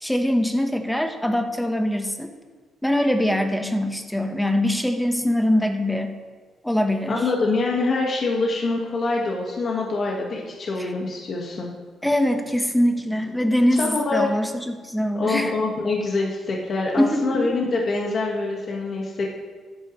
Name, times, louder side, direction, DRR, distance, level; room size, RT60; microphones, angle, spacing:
voice 1, 0.0-2.3 2.8-6.2 6.6-7.2 10.8-10.9 12.0-15.5 17.0-17.5, left 1 dB, 5° left, 6 dB, 1.2 m, -23 dB
voice 2, 7.1-11.7 13.8-14.3 15.1-19.3, left 3 dB, 45° left, -1 dB, 1.6 m, -25 dB
13.5 x 11.0 x 3.2 m, 1.4 s
cardioid pair, 90°, 0 cm